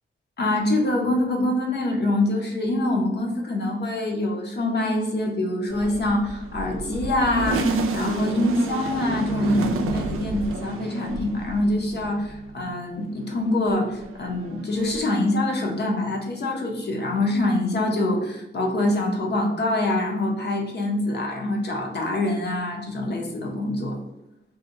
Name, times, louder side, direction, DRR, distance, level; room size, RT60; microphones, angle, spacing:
voice 1, 0.4-24.0, left 1 dB, 50° left, 1 dB, 0.7 m, -25 dB
sound 1, 5.7-12.6 13.0-15.0, right 3 dB, 85° right, 0.4 m, -30 dB
2.7 x 2.2 x 3.6 m, 0.90 s
wide cardioid pair, 130°, 21 cm